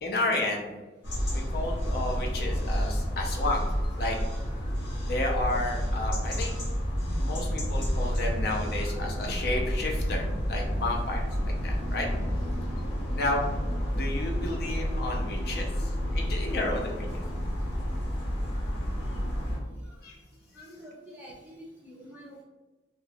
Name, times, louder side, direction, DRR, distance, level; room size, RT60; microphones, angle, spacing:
voice 1, 0.0-0.7 1.3-3.7 4.0-4.2 5.0-6.5 7.2-12.1 13.2-13.4 13.9-17.2 20.0-20.2, left 2 dB, 55° left, 0 dB, 0.5 m, -32 dB
sound 1, 1.0-19.6, equal, 75° left, 1.1 m, -30 dB
voice 2, 18.8-20.1 20.5-22.4, equal, 10° right, -6 dB, 0.7 m, -49 dB
2.8 x 2.2 x 3.4 m, 1.2 s
head